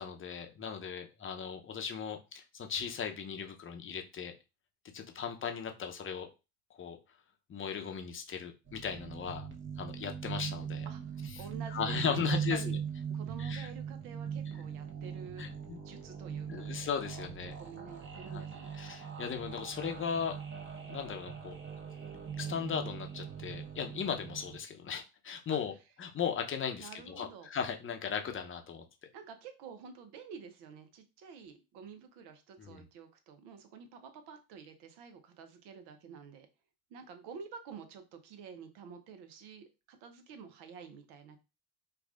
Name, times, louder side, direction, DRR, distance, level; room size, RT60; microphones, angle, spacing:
voice 1, 0.0-4.3 4.9-6.3 6.8-7.0 7.5-9.5 9.8-10.9 11.7-12.8 13.4-13.7 15.4-15.8 16.5-17.5 18.3-18.5 18.7-20.4 20.9-21.6 22.4-25.7 26.0-28.8 32.6-32.8, left 7 dB, 30° left, 5 dB, 0.7 m, -37 dB
sound 1, 8.7-24.6, right 7 dB, 25° right, 1.0 m, -40 dB
voice 2, 10.8-12.7 13.1-15.5 15.7-16.7 17.6-18.7 26.8-27.5 29.1-36.5 36.9-41.4, right 6 dB, 65° right, 7 dB, 0.9 m, -49 dB
4.5 x 2.4 x 2.4 m, 0.28 s
hypercardioid pair, 75°, 43 cm